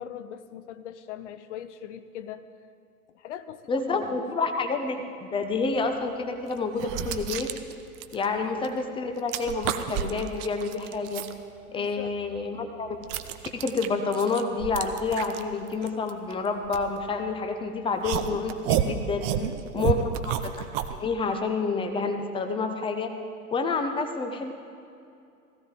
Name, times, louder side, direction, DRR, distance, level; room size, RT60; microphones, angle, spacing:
voice 1, 0.0-2.4 3.1-4.2 8.4-8.6 11.7-12.2 19.3-20.1, left 10 dB, 50° left, 11 dB, 0.8 m, -40 dB
voice 2, 3.7-7.5 8.1-11.2 11.7-13.0 13.5-19.2 19.7-20.0 20.2-20.5 20.9-23.1 23.5-24.5, left 4 dB, 10° left, 6 dB, 0.9 m, -28 dB
sound 1, 5.7-5.8 6.5-8.8 9.1-11.3 11.8-17.5 18.0-21.0, right 10 dB, 25° right, 0.5 m, -31 dB
16.5 x 15.0 x 3.8 m, 2.5 s
figure-of-eight pair, 100°, 44 cm